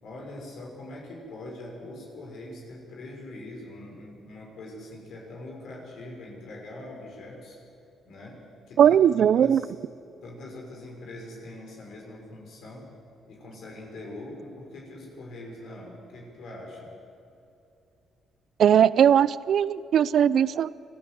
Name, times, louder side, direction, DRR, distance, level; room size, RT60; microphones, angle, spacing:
voice 1, 0.0-7.6 8.0-9.7 10.2-12.9 13.3-17.0, left 1 dB, 70° left, -1 dB, 6.0 m, -42 dB
voice 2, 8.8-9.6 18.6-20.7, right 9 dB, 65° right, 18 dB, 0.5 m, -19 dB
25.5 x 15.0 x 7.9 m, 2.8 s
cardioid pair, 90°, 0 cm